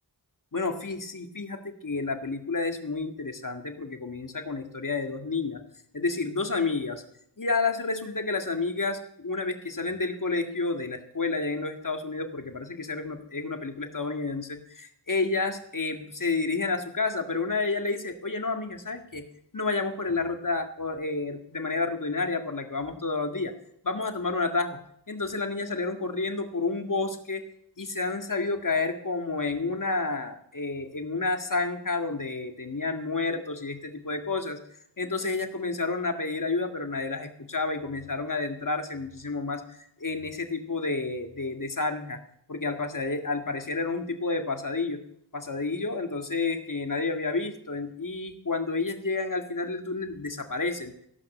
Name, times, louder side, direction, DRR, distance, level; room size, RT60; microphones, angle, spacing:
voice 1, 0.5-5.6 5.9-7.0 7.4-19.3 19.5-23.5 23.8-24.8 25.1-27.4 27.8-34.6 35.0-42.2 42.5-45.0 45.3-50.9, left 3 dB, 45° left, 5 dB, 1.9 m, -30 dB
17.5 x 5.9 x 7.9 m, 0.71 s
cardioid pair, 40°, 42 cm